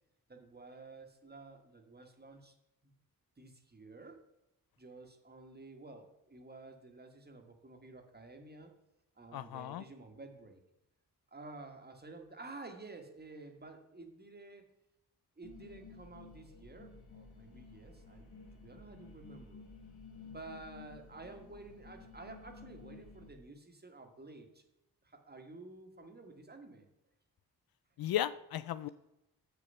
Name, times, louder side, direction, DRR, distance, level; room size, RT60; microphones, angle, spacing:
voice 1, 0.3-2.5 2.8-2.9 3.4-4.2 4.8-8.7 9.2-10.6 11.3-14.6 15.4-18.2 18.6-19.6 20.2-24.6 25.0-26.9, right 3 dB, 25° right, 5 dB, 1.5 m, -51 dB
voice 2, 9.3-9.8 28.0-28.9, left 12 dB, 70° left, 15 dB, 0.5 m, -35 dB
sound 1, 15.4-23.3, left 4 dB, 90° left, 2.0 m, -53 dB
7.0 x 6.7 x 5.5 m, 0.88 s
cardioid pair, 55°, 37 cm